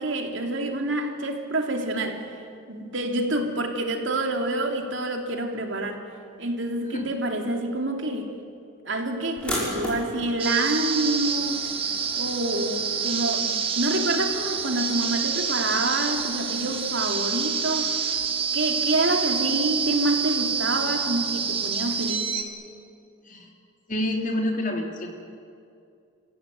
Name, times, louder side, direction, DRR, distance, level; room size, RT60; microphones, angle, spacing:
voice 1, 0.0-2.2 2.7-6.0 6.4-8.3 8.8-11.6 12.1-17.9 18.5-22.3, right 2 dB, 65° right, 3 dB, 3.0 m, -27 dB
sound 1, 9.4-18.1, equal, 5° left, 6.8 m, -39 dB
sound 2, 10.4-22.4, right 6 dB, 25° right, 1.6 m, -27 dB
voice 2, 23.9-25.1, left 1 dB, 40° left, 2 dB, 3.3 m, -27 dB
30.0 x 16.0 x 9.4 m, 2.5 s
head